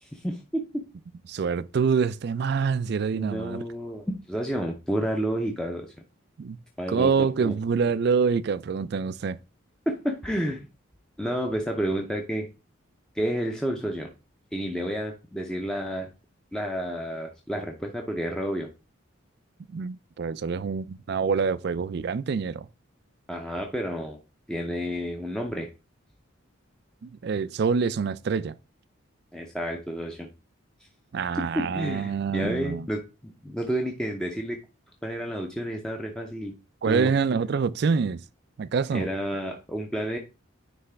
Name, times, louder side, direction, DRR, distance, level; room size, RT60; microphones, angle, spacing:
voice 1, 0.0-0.8 3.1-5.9 6.8-7.5 9.9-10.7 11.2-12.5 13.1-14.1 14.5-16.1 16.5-18.7 23.3-24.2 24.5-25.7 29.3-30.3 31.4-34.6 35.0-36.5 36.9-37.1 38.9-40.2, equal, 5° left, 0.6 m, -30 dB
voice 2, 1.3-3.6 6.4-6.6 6.9-9.4 19.7-22.7 27.0-28.5 31.1-32.9 36.8-38.2 38.6-39.1, right 5 dB, 50° right, 0.3 m, -26 dB
9.5 x 3.2 x 3.3 m
head